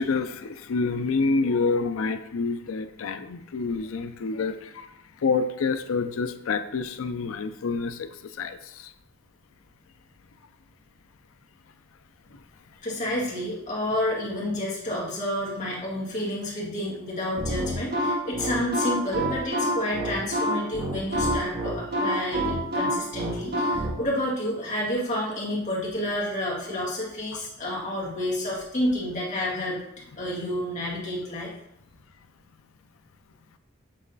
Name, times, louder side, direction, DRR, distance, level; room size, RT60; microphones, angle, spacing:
voice 1, 0.0-4.9 5.2-8.1 8.4-8.9, left 4 dB, 80° left, 10 dB, 0.5 m, -27 dB
voice 2, 12.8-29.8 30.2-31.5, left 1 dB, 35° left, -5 dB, 1.9 m, -29 dB
sound 1, 17.4-23.9, equal, 55° right, 1.3 m, -27 dB
7.5 x 3.2 x 3.9 m, 0.80 s
head